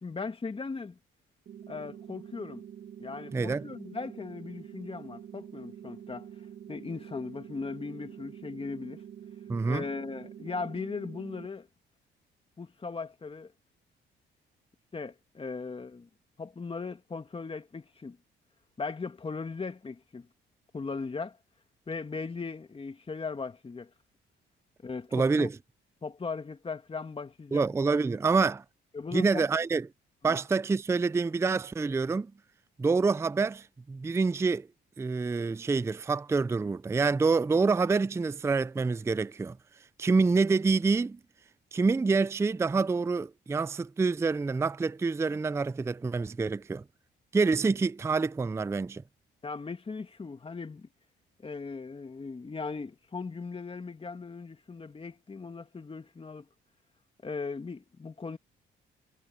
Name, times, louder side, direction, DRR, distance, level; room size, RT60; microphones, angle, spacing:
voice 1, 0.0-1.0 1.7-2.6 3.0-6.3 6.7-9.0 9.7-11.7 12.6-13.5 14.9-16.1 16.4-18.2 18.8-20.3 20.7-21.4 21.9-23.9 24.8-25.5 26.0-27.6 28.9-29.5 30.2-30.4 49.4-50.9 51.4-56.5 57.2-58.4, left 4 dB, 30° left, 2.2 m, -38 dB
sound 1, 1.5-11.5, right 9 dB, 65° right, 2.3 m, -46 dB
voice 2, 3.3-3.6 9.5-9.9 25.1-25.5 27.5-28.6 29.1-29.9 30.2-32.3 32.8-34.7 35.0-39.6 40.0-41.2 41.7-46.8 47.3-49.0, right 4 dB, 15° right, 0.4 m, -27 dB
cardioid pair, 90°, 20 cm